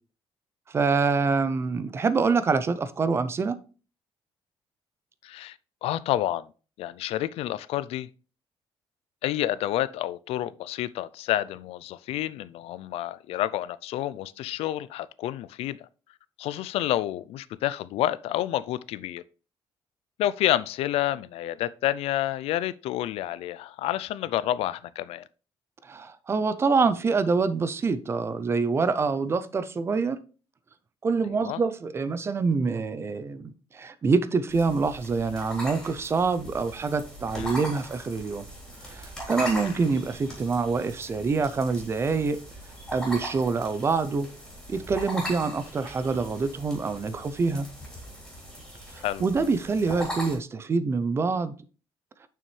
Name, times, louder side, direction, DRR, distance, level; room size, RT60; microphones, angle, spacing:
voice 1, 0.7-3.6 25.8-30.2 31.0-38.4 38.8-42.4 42.9-44.3 44.7-47.7 48.9-51.5, right 4 dB, 25° right, 0.5 m, -26 dB
voice 2, 5.2-5.6 5.8-6.4 6.8-8.1 9.2-15.9 16.4-19.2 20.2-25.2 31.3-31.6 37.4-37.6 39.4-39.5 49.0-49.3, left 13 dB, 90° left, 0.4 m, -29 dB
sound 1, 34.5-50.4, equal, 5° left, 3.5 m, -40 dB
6.8 x 6.1 x 3.2 m
cardioid pair, 160°, 10 cm